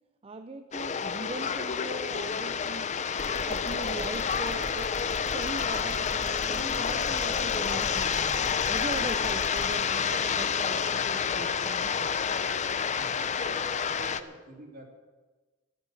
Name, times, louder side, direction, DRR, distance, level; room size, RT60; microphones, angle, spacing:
voice 1, 0.2-2.9 3.4-4.9 5.3-12.2, right 2 dB, 30° right, 8 dB, 0.5 m, -40 dB
sound 1, 0.7-14.2, left 6 dB, 35° left, 0.6 m, -29 dB
sound 2, 3.2-9.7, equal, 55° left, 2.9 m, -41 dB
voice 2, 12.9-14.9, equal, 50° right, 1 dB, 3.0 m, -46 dB
13.0 x 12.0 x 7.2 m, 1.3 s
head